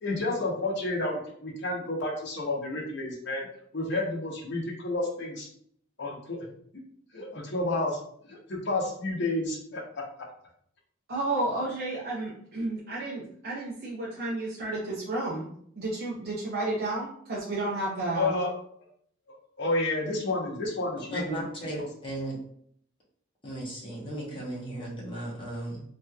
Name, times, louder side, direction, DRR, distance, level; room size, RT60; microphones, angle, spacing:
voice 1, 0.0-3.4 3.7-5.5 6.0-6.5 7.1-8.0 8.3-10.0 18.1-18.5 19.6-21.4, left 2 dB, 65° left, -1 dB, 0.8 m, -30 dB
voice 2, 11.1-15.5 15.8-18.3, right 2 dB, 55° right, -6 dB, 0.6 m, -31 dB
voice 3, 21.1-22.4 23.4-25.8, right 1 dB, 25° left, -5 dB, 1.0 m, -36 dB
3.1 x 2.7 x 2.3 m, 0.64 s
head